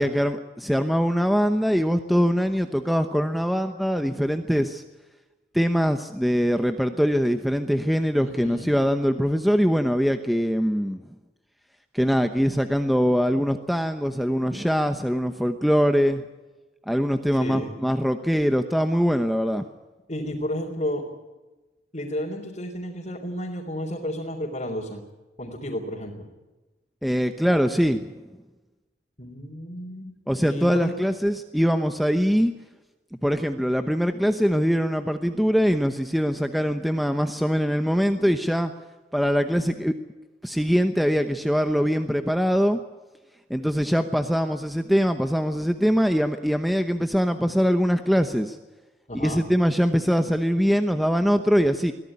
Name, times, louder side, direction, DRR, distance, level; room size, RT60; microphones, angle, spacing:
voice 1, 0.0-4.8 5.5-11.0 11.9-16.2 16.9-19.6 27.0-28.1 30.3-32.5 33.2-38.7 39.1-39.9 40.4-42.8 43.5-48.6 49.2-51.9, equal, ahead, 7 dB, 0.9 m, -22 dB
voice 2, 8.3-8.7 17.3-17.7 20.1-21.1 21.9-25.0 25.4-26.3 29.2-30.1 30.4-31.0 49.1-49.4, equal, 40° left, -3 dB, 3.7 m, -32 dB
23.0 x 16.5 x 9.9 m, 1.2 s
head